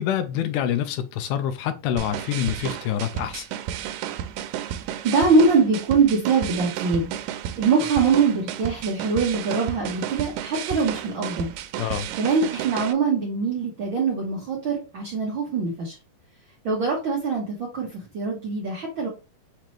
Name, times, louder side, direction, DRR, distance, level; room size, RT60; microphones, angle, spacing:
voice 1, 0.0-3.5 11.8-12.1, left 10 dB, 80° left, 2.0 m, -26 dB
sound 1, 2.0-12.9, right 10 dB, 90° right, 2.2 m, -32 dB
voice 2, 5.0-7.2 7.6-11.5 12.2-15.9 16.6-19.1, right 4 dB, 65° right, 1.2 m, -23 dB
5.9 x 2.8 x 3.1 m
omnidirectional pair, 3.7 m